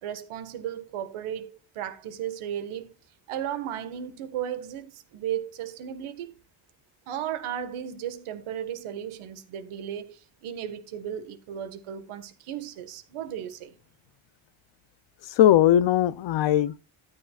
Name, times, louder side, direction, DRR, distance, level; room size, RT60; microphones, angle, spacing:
voice 1, 0.0-3.0 3.3-6.4 7.1-13.7, right 10 dB, 80° right, 1.9 m, -35 dB
voice 2, 15.2-16.8, left 12 dB, 60° left, 0.8 m, -20 dB
14.0 x 9.8 x 2.5 m
cardioid pair, 135°, 49 cm